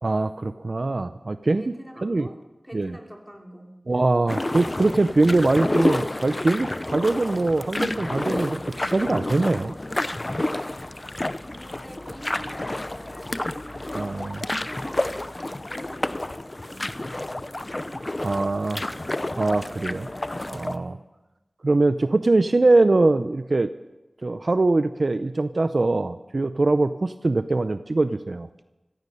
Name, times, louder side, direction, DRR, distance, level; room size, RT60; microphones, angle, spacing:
voice 1, 0.0-1.6 2.0-2.3 2.7-3.0 3.9-9.7 13.9-14.4 18.2-18.8 19.4-20.1 20.5-20.9 21.6-23.7 24.2-28.5, right 2 dB, 65° right, 12 dB, 0.5 m, -22 dB
voice 2, 1.5-4.3 11.5-16.9 18.0-20.3 20.7-20.9, equal, 5° right, 1 dB, 3.0 m, -46 dB
sound 1, 4.3-20.8, left 1 dB, 35° left, 0.7 m, -30 dB
15.5 x 15.0 x 5.6 m, 1.0 s
wide cardioid pair, 50°, 0 cm